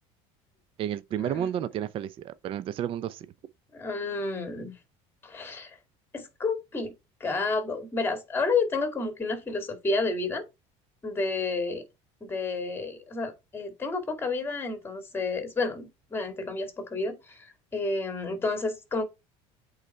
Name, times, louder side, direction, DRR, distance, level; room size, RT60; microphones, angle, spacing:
voice 1, 0.8-3.3, right 10 dB, 40° right, 0.5 m, -31 dB
voice 2, 3.7-4.7 5.2-5.8 6.1-6.9 7.2-10.4 11.0-11.8 12.2-19.0, left 3 dB, 15° left, 2.1 m, -30 dB
8.3 x 4.0 x 4.3 m
cardioid pair, 135°, 15 cm